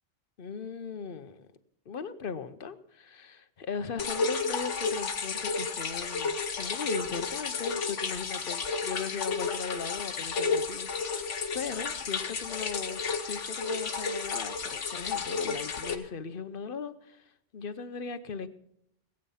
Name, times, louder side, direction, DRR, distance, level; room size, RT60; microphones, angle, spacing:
voice 1, 0.4-1.5 1.9-18.5, left 5 dB, 50° left, 12 dB, 0.9 m, -38 dB
sound 1, 4.0-15.9, left 4 dB, 75° left, 1.5 m, -32 dB
19.5 x 8.9 x 5.6 m, 0.75 s
omnidirectional pair, 1.2 m